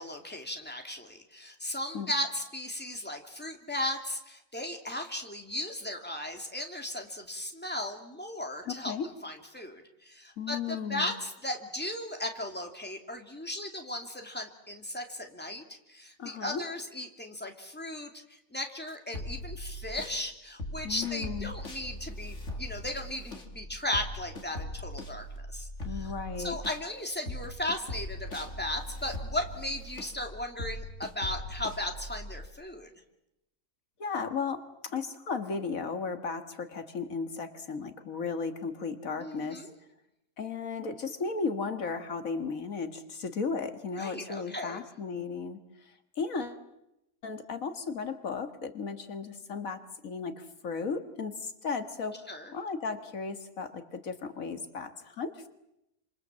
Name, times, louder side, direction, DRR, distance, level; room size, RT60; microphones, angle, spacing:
voice 1, 0.0-8.9 9.2-18.1 18.5-26.1 26.4-32.9 39.2-39.7 44.0-44.8 52.3-52.5, left 1 dB, 5° left, 3 dB, 2.7 m, -36 dB
voice 2, 8.7-9.1 10.4-11.1 16.2-16.6 20.8-21.5 25.8-26.6 34.0-39.6 40.4-46.6 47.2-52.2 52.5-55.5, left 5 dB, 75° left, 8 dB, 2.0 m, -35 dB
sound 1, 19.1-20.2 20.6-26.8 27.3-32.5, left 1 dB, 55° left, 3.1 m, -40 dB
28.0 x 27.0 x 7.5 m, 0.86 s
omnidirectional pair, 1.4 m